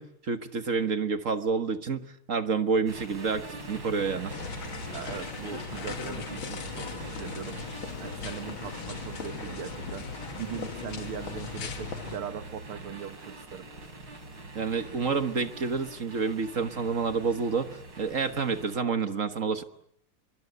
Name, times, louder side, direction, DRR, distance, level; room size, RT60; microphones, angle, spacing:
voice 1, 0.0-4.3 14.5-19.6, right 5 dB, 40° right, 9 dB, 1.5 m, -29 dB
sound 1, 2.9-18.8, right 2 dB, 55° right, 5.0 m, -43 dB
sound 2, 4.3-12.2, left 6 dB, 65° left, 2.5 m, -38 dB
voice 2, 4.9-7.7 8.0-10.1 10.4-13.7, right 9 dB, 80° right, 10 dB, 2.3 m, -40 dB
29.5 x 23.0 x 8.0 m, 0.68 s
omnidirectional pair, 2.4 m